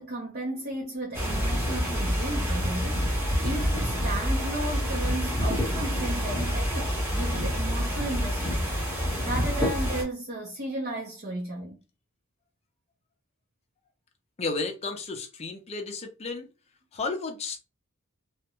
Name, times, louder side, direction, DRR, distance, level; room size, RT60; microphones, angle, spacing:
voice 1, 0.0-11.8, right 1 dB, 50° right, 0.7 m, -35 dB
sound 1, 1.1-10.0, equal, 10° right, 0.9 m, -27 dB
voice 2, 14.4-16.5 16.9-17.6, left 3 dB, 30° left, 0.5 m, -33 dB
2.4 x 2.1 x 2.9 m
head